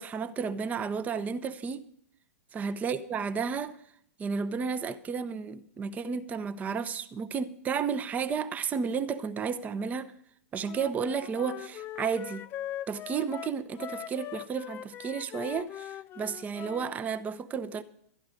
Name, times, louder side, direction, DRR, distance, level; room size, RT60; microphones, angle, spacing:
voice 1, 0.0-1.8 2.5-3.8 4.2-10.1 10.5-12.4 12.9-17.8, right 6 dB, 20° right, 0.6 m, -32 dB
Wind instrument woodwind instrument, 10.6-17.0, left 11 dB, 25° left, 0.4 m, -41 dB
12.0 x 10.5 x 5.0 m
hypercardioid pair, 110°, 8 cm